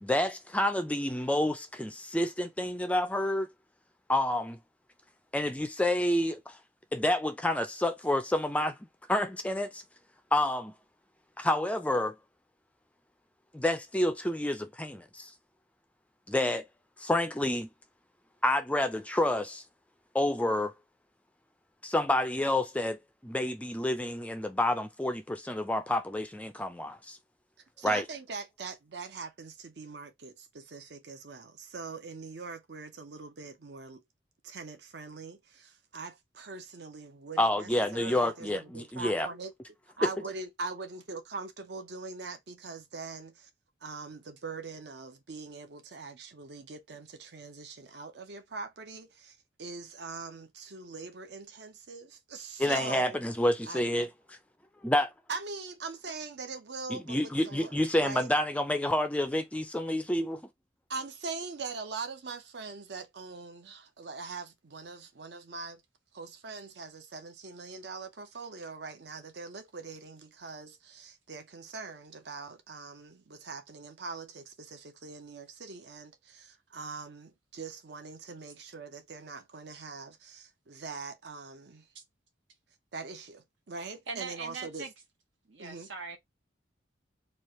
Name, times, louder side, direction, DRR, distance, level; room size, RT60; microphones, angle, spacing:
voice 1, 0.0-3.5 4.1-4.6 5.3-6.6 6.9-8.8 9.1-9.8 10.3-10.7 11.4-12.2 13.5-15.3 16.3-16.7 17.0-17.7 18.4-19.6 20.1-20.7 21.8-27.2 27.8-28.0 37.4-39.3 40.0-40.1 52.6-54.1 54.8-55.1 56.9-60.4, left 1 dB, 5° left, 0.3 m, -29 dB
voice 2, 27.8-34.0 34.4-39.5 40.0-43.5 43.8-53.2 53.7-54.1 55.3-57.7 58.0-58.3 60.9-65.8 66.1-81.9 82.9-84.8 85.6-85.9, right 4 dB, 60° right, 0.7 m, -42 dB
voice 3, 84.1-84.9 85.5-86.2, right 4 dB, 85° right, 1.2 m, -40 dB
3.1 x 2.4 x 4.1 m
head